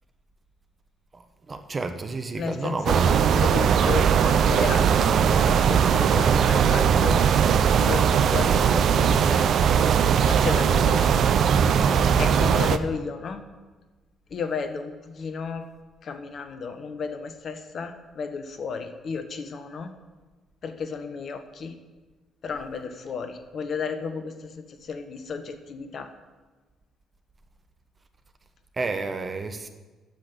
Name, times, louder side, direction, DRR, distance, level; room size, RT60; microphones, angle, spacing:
voice 1, 1.1-3.1 28.7-29.7, right 3 dB, 30° right, 7 dB, 1.2 m, -31 dB
voice 2, 2.4-7.3 7.8-9.7 10.2-11.2 12.1-13.4 14.3-15.6 16.0-19.9 20.6-21.8 22.4-26.1, left 5 dB, 50° left, 8 dB, 1.1 m, -33 dB
sound 1, 2.9-12.8, right 7 dB, 55° right, 0.5 m, -20 dB
9.3 x 7.7 x 8.9 m, 1.3 s
figure-of-eight pair, 45°, 0 cm